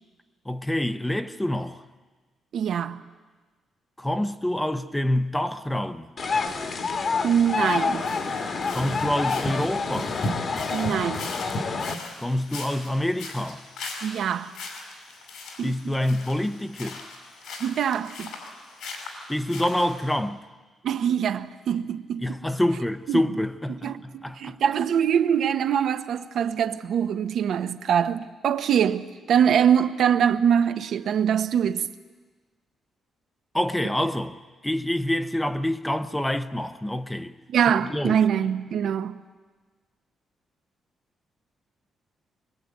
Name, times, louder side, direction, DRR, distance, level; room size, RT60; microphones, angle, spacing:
voice 1, 0.5-1.8 4.0-6.1 8.7-10.2 12.2-13.6 15.6-17.0 19.3-20.5 22.2-24.6 33.5-34.4 34.6-37.3 37.9-38.2, left 1 dB, 5° left, 0.7 m, -27 dB
voice 2, 2.5-3.0 7.2-8.1 10.7-11.3 14.0-14.5 15.6-15.9 17.6-18.3 20.8-22.4 23.1-23.2 23.8-31.9 37.5-39.2, right 8 dB, 60° right, 0.9 m, -23 dB
sound 1, 6.2-11.9, left 4 dB, 40° left, 1.5 m, -27 dB
sound 2, 6.5-20.2, left 4 dB, 80° left, 5.8 m, -42 dB
23.5 x 22.0 x 9.2 m
cardioid pair, 165°, 0 cm